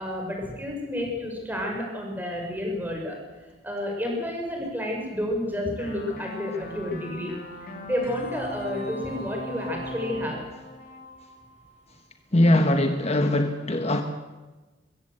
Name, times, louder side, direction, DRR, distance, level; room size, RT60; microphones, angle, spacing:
voice 1, 0.0-3.2 3.6-7.3 7.6-10.4, left 1 dB, 10° right, 0 dB, 5.5 m, -30 dB
sound 1, 5.8-11.9, left 1 dB, 50° left, 2.8 m, -39 dB
voice 2, 12.3-14.0, left 1 dB, 35° left, 6 dB, 1.2 m, -21 dB
23.0 x 15.5 x 7.9 m, 1.2 s
head